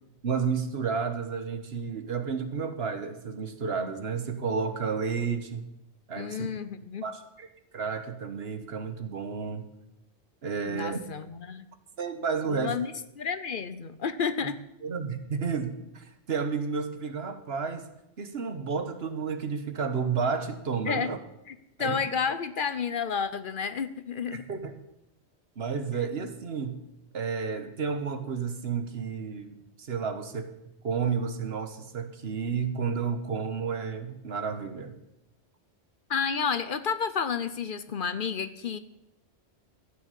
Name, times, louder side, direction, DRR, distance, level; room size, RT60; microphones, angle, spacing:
voice 1, 0.2-5.7 6.1-6.5 7.0-7.5 7.7-9.7 10.4-11.0 12.0-12.8 14.8-17.9 18.2-21.2 21.8-22.0 24.3-24.7 25.6-26.8 27.1-30.5 30.8-35.0, right 5 dB, 65° right, 9 dB, 1.4 m, -31 dB
voice 2, 6.2-7.1 10.6-11.7 12.5-12.9 13.2-14.6 20.9-21.1 21.5-24.5 36.1-38.8, left 6 dB, 55° left, 13 dB, 0.8 m, -31 dB
15.0 x 6.3 x 8.2 m, 0.87 s
omnidirectional pair, 1.1 m